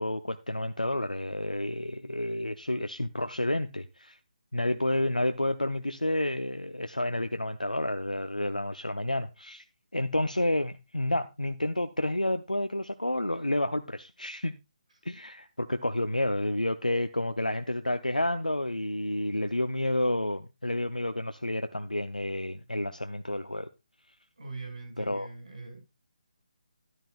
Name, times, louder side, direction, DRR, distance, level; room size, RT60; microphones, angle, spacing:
voice 1, 0.0-4.2 4.5-9.6 9.9-14.5 15.1-23.7 25.0-25.3, left 1 dB, 85° left, 0.6 m, -30 dB
voice 2, 24.4-25.8, right 3 dB, 60° right, 5.9 m, -42 dB
12.5 x 11.0 x 2.4 m
figure-of-eight pair, 150°, 4 cm